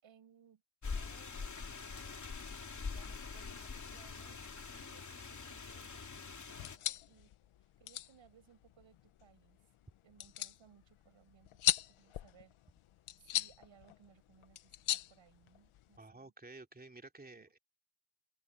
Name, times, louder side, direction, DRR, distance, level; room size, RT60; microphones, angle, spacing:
voice 1, 0.0-7.3 7.8-9.6 10.0-12.5 13.2-16.3 17.3-17.4, right 8 dB, 65° right, 7.9 m, -65 dB
sound 1, 0.8-6.8, left 5 dB, 35° left, 3.2 m, -44 dB
sound 2, 6.5-16.0, left 12 dB, 85° left, 1.2 m, -40 dB
voice 2, 16.0-17.6, right 2 dB, 20° right, 2.9 m, -53 dB
open air
cardioid pair, 90°, 49 cm